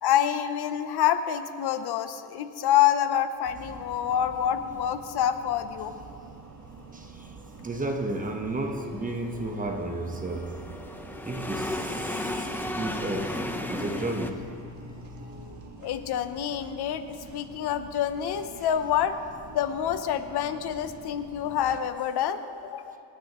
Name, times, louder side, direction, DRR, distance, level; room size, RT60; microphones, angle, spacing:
voice 1, 0.0-5.9 15.8-19.2 19.5-23.0, left 10 dB, 65° left, 0.8 m, -27 dB
sound 1, 3.4-21.8, right 4 dB, 45° right, 1.5 m, -47 dB
voice 2, 6.9-7.3 7.6-10.7 11.2-14.5, right 2 dB, 20° right, 1.1 m, -33 dB
sound 2, 7.4-14.3, left 1 dB, 5° left, 0.7 m, -35 dB
sound 3, 8.5-16.0, left 4 dB, 50° left, 3.7 m, -46 dB
27.0 x 9.5 x 3.0 m
cardioid pair, 120°, 41 cm